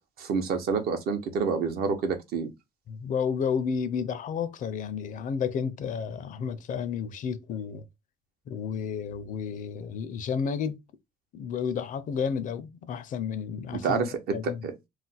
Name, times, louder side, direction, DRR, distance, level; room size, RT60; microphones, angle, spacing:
voice 1, 0.2-2.5 13.7-14.7, right 5 dB, 65° right, 0.7 m, -28 dB
voice 2, 2.9-7.8 8.5-10.8 11.3-14.6, left 6 dB, 50° left, 0.4 m, -31 dB
2.4 x 2.1 x 3.9 m
cardioid pair, 110°, 17 cm